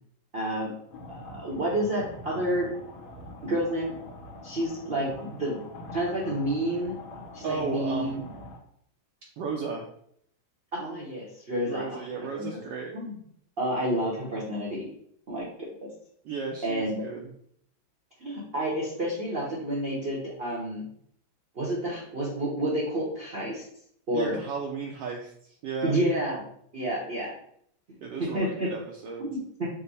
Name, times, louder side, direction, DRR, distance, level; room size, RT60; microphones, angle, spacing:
voice 1, 0.3-0.7 1.1-2.7 3.4-4.0 4.4-5.6 5.9-6.9 7.3-8.2 10.7-12.0 12.3-12.6 12.9-13.2 13.6-14.9 15.3-15.9 16.6-17.0 18.2-20.9 21.5-23.6 24.1-24.3 25.8-26.5 26.7-27.3 28.2-28.7 29.2-29.7, right 1 dB, 50° right, -5 dB, 0.7 m, -29 dB
sound 1, 0.9-8.6, left 2 dB, 80° left, 1.6 m, -44 dB
voice 2, 7.4-8.2 9.4-9.8 11.6-12.9 16.2-17.3 24.1-26.0 28.0-29.3, right 5 dB, 75° right, 0 dB, 1.1 m, -34 dB
5.3 x 2.1 x 4.0 m, 0.68 s
omnidirectional pair, 2.2 m